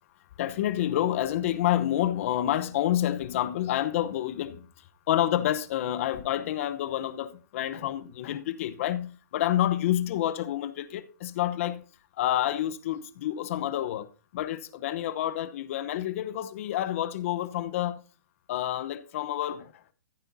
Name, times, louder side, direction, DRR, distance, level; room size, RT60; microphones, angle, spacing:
voice 1, 0.4-4.7 5.1-11.8 12.2-14.1 14.3-18.0 18.5-19.7, left 12 dB, 50° left, 0.9 m, -28 dB
15.0 x 8.9 x 2.7 m
hypercardioid pair, 145°, 9 cm